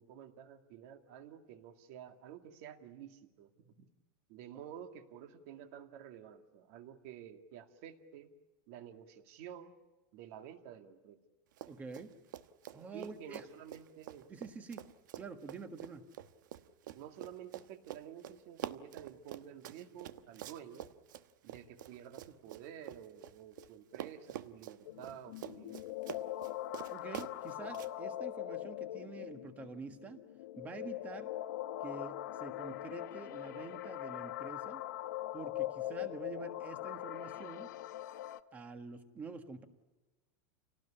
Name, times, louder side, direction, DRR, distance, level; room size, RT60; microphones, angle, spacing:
voice 1, 0.0-3.9 4.3-8.3 8.7-9.7 10.1-11.2 12.9-14.3 16.9-20.9 21.4-25.9, right 9 dB, 45° right, 7 dB, 2.0 m, -51 dB
Run, 11.5-12.1 12.3-23.7 23.9-27.9, right 12 dB, 85° right, 1.2 m, -46 dB
voice 2, 11.7-12.1 12.7-13.4 14.3-14.8 15.2-16.0 26.9-30.2 30.6-31.3 31.8-34.8 35.3-37.7 38.5-39.7, right 4 dB, 15° right, 8 dB, 1.4 m, -47 dB
sound 1, 24.8-38.4, left 14 dB, 75° left, 0.9 m, -42 dB
28.5 x 18.5 x 10.0 m, 1.1 s
supercardioid pair, 175°, 10 cm